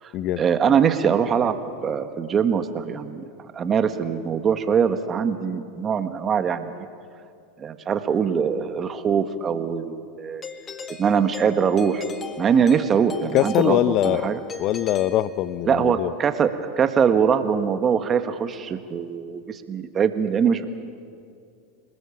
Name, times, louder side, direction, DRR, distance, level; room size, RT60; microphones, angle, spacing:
voice 1, 0.4-3.2 3.5-6.7 7.6-10.4 11.0-12.0 12.4-14.4 15.7-20.6, right 7 dB, 30° right, 8 dB, 1.7 m, -22 dB
Doorbell, 10.4-15.8, left 5 dB, 25° left, 2.1 m, -38 dB
voice 2, 13.3-16.1, left 13 dB, 50° left, 16 dB, 0.8 m, -23 dB
29.0 x 20.5 x 7.3 m, 2.3 s
hypercardioid pair, 110°, 0 cm